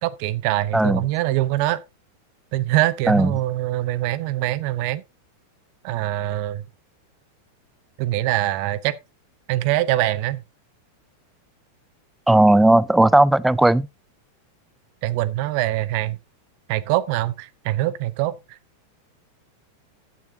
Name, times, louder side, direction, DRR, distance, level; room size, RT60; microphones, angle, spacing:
voice 1, 0.0-1.8 2.5-5.0 5.8-6.6 8.0-9.0 9.5-10.4 15.0-16.2 16.7-18.6, right 15 dB, 45° right, 0.7 m, -23 dB
voice 2, 12.3-13.9, right 1 dB, 5° right, 0.4 m, -16 dB
14.5 x 6.9 x 2.7 m
figure-of-eight pair, 90°, 0 cm